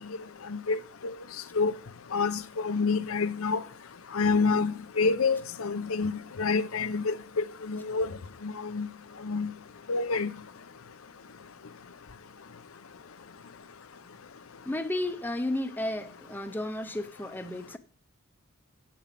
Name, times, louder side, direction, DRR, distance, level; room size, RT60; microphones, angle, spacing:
voice 1, 0.5-1.1 1.5-1.7 2.1-3.6 4.1-8.1 8.4-8.9 9.3-9.5 9.9-10.3, left 4 dB, 85° left, 0.7 m, -28 dB
voice 2, 14.7-17.8, left 1 dB, 10° left, 0.7 m, -33 dB
8.6 x 7.2 x 5.9 m
head